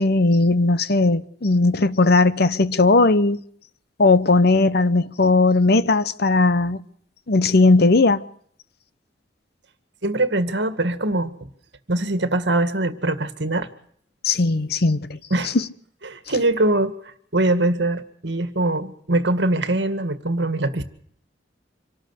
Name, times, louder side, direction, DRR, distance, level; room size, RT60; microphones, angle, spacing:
voice 1, 0.0-3.4 4.0-6.8 7.3-8.2 14.2-15.2, left 3 dB, 60° left, 1.0 m, -17 dB
voice 2, 10.0-11.3 11.9-13.7 15.3-15.5 16.0-16.9 17.3-20.8, right 2 dB, 70° right, 2.0 m, -22 dB
26.0 x 13.0 x 8.3 m
head